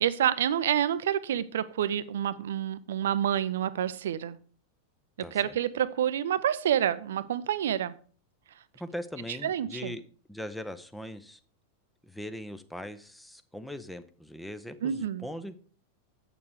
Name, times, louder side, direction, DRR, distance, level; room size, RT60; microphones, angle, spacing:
voice 1, 0.0-4.4 5.3-7.9 9.4-10.0 14.8-15.2, right 10 dB, 60° right, 16 dB, 0.6 m, -28 dB
voice 2, 5.2-5.5 8.7-10.0 10.3-11.4 12.0-15.6, left 1 dB, 5° left, 10 dB, 0.8 m, -40 dB
7.9 x 6.9 x 4.9 m, 0.42 s
figure-of-eight pair, 90°, 0 cm